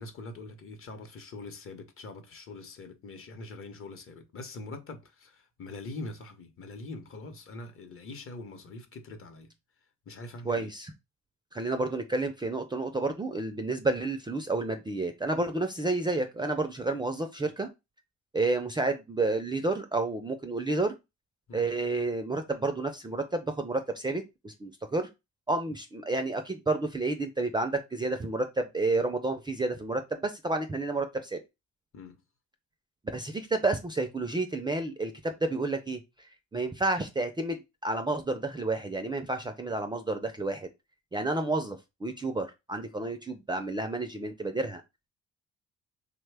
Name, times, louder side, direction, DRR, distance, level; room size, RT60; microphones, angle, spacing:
voice 1, 0.0-9.5 10.1-10.7 21.5-21.7 31.9-32.2, left 2 dB, 45° left, 0.8 m, -43 dB
voice 2, 10.5-10.9 11.5-17.7 18.3-21.0 21.5-25.1 25.5-31.4 33.1-36.0 36.5-40.7 41.1-44.8, right 2 dB, 15° right, 0.4 m, -30 dB
3.1 x 2.2 x 3.3 m
cardioid pair, 90°, 30 cm